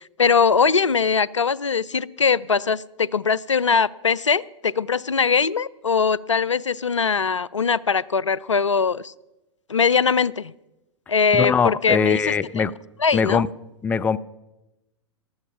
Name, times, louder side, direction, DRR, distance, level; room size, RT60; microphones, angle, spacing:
voice 1, 0.2-9.1 9.7-10.5 11.1-12.2 12.6-12.7 13.0-13.4, left 5 dB, 85° left, 0.5 m, -21 dB
voice 2, 11.3-12.7 13.1-13.5 13.8-14.2, left 6 dB, 10° left, 0.4 m, -21 dB
15.0 x 12.5 x 5.8 m
figure-of-eight pair, 105°, 15 cm